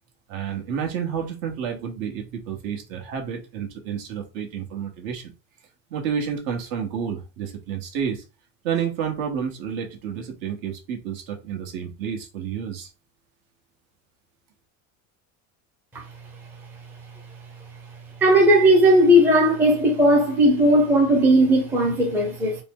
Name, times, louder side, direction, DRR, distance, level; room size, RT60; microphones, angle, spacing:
voice 1, 0.3-5.3 5.9-8.2 8.6-12.9, right 7 dB, 70° right, 1.2 m, -30 dB
voice 2, 18.2-22.6, equal, 5° right, 0.4 m, -17 dB
3.7 x 2.1 x 3.6 m
cardioid pair, 165°, 40 cm